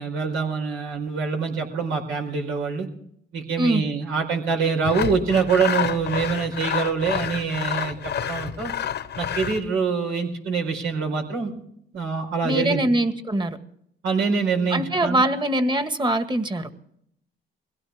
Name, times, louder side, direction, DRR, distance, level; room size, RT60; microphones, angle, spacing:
voice 1, 0.0-2.9 3.3-8.0 8.2-8.7 9.2-11.5 11.9-12.8 14.0-15.3, right 5 dB, 85° right, 4.6 m, -25 dB
Sawing, 4.8-9.7, left 9 dB, 60° left, 1.0 m, -29 dB
voice 2, 12.4-13.6 14.7-16.7, right 1 dB, 25° right, 1.8 m, -23 dB
22.0 x 16.5 x 3.6 m
cardioid pair, 90°, 20 cm